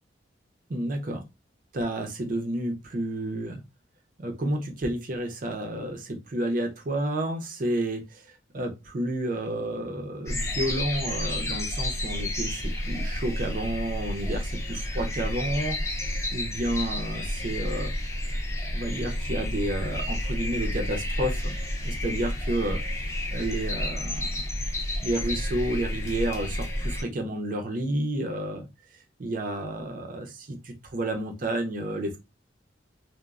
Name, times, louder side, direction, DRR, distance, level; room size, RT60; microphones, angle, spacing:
voice 1, 0.7-1.2 1.7-3.6 4.2-8.2 8.5-17.9 18.3-18.4 18.7-21.5 21.8-23.0 23.3-24.5 25.0-28.7 29.2-32.2, right 1 dB, 45° right, 4 dB, 0.5 m, -31 dB
sound 1, 10.3-27.0, left 1 dB, 15° left, 0.5 m, -30 dB
3.0 x 2.1 x 2.3 m, 0.24 s
head